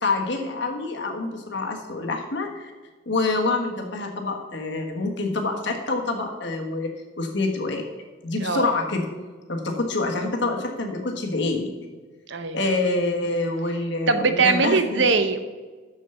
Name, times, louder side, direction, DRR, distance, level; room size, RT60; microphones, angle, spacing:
voice 1, 0.0-2.7 3.0-6.9 7.2-7.8 8.2-9.1 9.5-11.7 12.5-15.0, left 2 dB, 60° left, 2 dB, 1.5 m, -26 dB
voice 2, 8.4-8.7 12.3-12.6 14.1-15.4, right 4 dB, 60° right, 9 dB, 0.7 m, -21 dB
6.6 x 6.4 x 6.9 m, 1.4 s
head